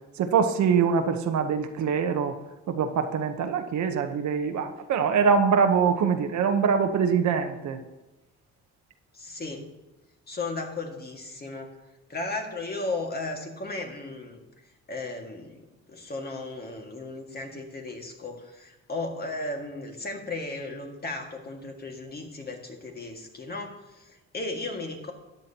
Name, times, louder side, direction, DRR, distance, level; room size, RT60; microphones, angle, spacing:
voice 1, 0.2-2.4 2.7-7.8, right 6 dB, 70° right, 7 dB, 1.1 m, -24 dB
voice 2, 9.1-9.7 10.3-11.7 12.1-14.4 14.9-15.6 15.9-25.1, left 2 dB, 30° left, 2 dB, 1.9 m, -35 dB
13.5 x 9.3 x 2.9 m, 1.0 s
cardioid pair, 90°, 30 cm